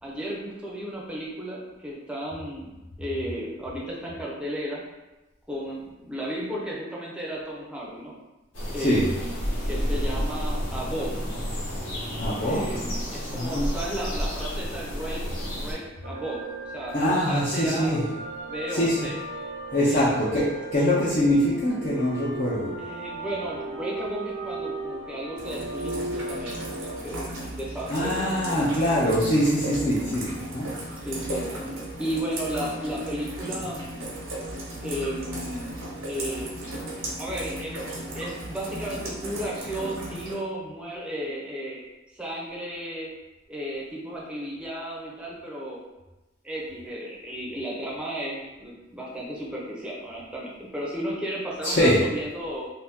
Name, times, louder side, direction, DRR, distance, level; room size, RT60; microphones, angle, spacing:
voice 1, 0.0-2.7 3.0-4.8 5.5-8.1 8.7-9.3 9.7-11.1 12.4-15.2 15.5-16.4 16.7-16.9 17.2-18.1 18.5-19.1 19.8-20.1 20.7-20.9 22.8-26.5 26.8-28.6 31.1-31.7 32.0-34.1 34.8-36.6 37.2-41.8 42.1-43.1 43.5-45.8 46.4-52.7, equal, 5° right, -5 dB, 0.6 m, -34 dB
sound 1, 8.5-15.7, equal, 85° left, 1.2 m, -30 dB
voice 2, 12.2-12.6 13.3-13.7 16.9-18.0 18.7-19.0 19.7-22.7 27.9-30.7 51.6-52.0, equal, 40° left, -8 dB, 0.6 m, -23 dB
sound 2, 16.0-27.0, right 3 dB, 60° right, 0.6 m, -36 dB
Rain, 25.4-40.3, right 1 dB, 90° right, 1.0 m, -36 dB
2.7 x 2.6 x 3.6 m, 1.1 s
head